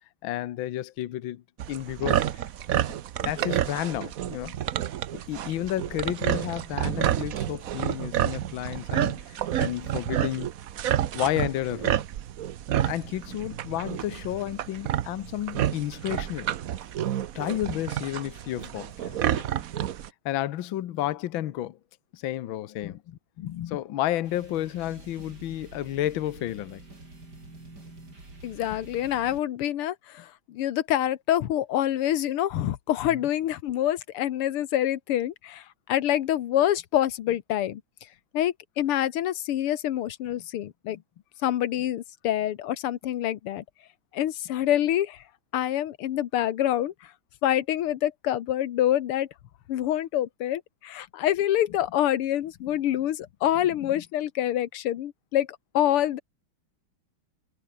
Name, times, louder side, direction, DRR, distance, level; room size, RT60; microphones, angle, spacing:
voice 1, 0.2-1.4 1.7-2.4 3.2-4.6 5.3-10.5 11.1-12.0 12.8-16.5 17.3-19.7 20.2-21.8 22.1-23.0 23.7-26.8 33.1-33.2, left 13 dB, 70° left, 1.6 m, -31 dB
sound 1, 1.6-20.1, right 11 dB, 60° right, 0.9 m, -29 dB
voice 2, 23.4-23.8 28.4-37.8 38.3-41.0 41.4-43.6 44.1-45.2 45.5-47.1 47.4-49.3 49.7-55.5 55.7-56.2, left 12 dB, 90° left, 2.0 m, -26 dB
sound 2, 24.2-29.4, right 2 dB, 45° right, 6.7 m, -47 dB
omnidirectional pair, 2.4 m